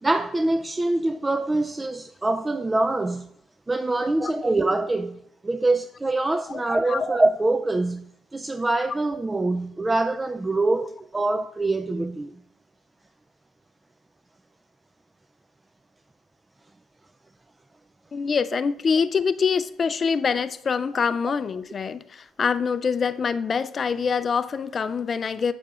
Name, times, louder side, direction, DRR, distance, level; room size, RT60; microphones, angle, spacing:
voice 1, 0.0-3.3 3.7-8.1 8.3-12.3, right 2 dB, 20° right, 0.4 m, -24 dB
voice 2, 4.0-4.3 6.5-7.1 18.1-25.5, left 6 dB, 45° left, 0.4 m, -25 dB
8.7 x 7.2 x 2.4 m
hypercardioid pair, 55°, 0 cm